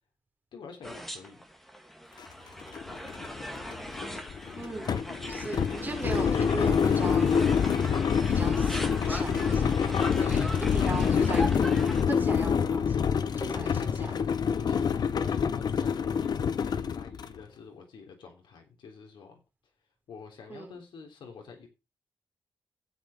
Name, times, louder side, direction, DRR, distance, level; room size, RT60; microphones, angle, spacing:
voice 1, 0.5-1.4 10.2-11.0 12.3-12.4 13.4-13.9 14.5-19.4 20.1-21.7, left 5 dB, 80° left, 3 dB, 3.6 m, -47 dB
sound 1, 0.8-12.0, equal, 5° left, 2.3 m, -40 dB
sound 2, 2.2-2.3 2.6-17.4, left 7 dB, 55° left, 0.9 m, -27 dB
voice 2, 4.6-7.4 8.3-8.8 9.1-11.7 12.1-13.0 13.4-14.1 20.5-20.8, right 3 dB, 25° right, 1 dB, 5.7 m, -38 dB
13.0 x 8.2 x 5.1 m, 0.28 s
wide cardioid pair, 120°, 8 cm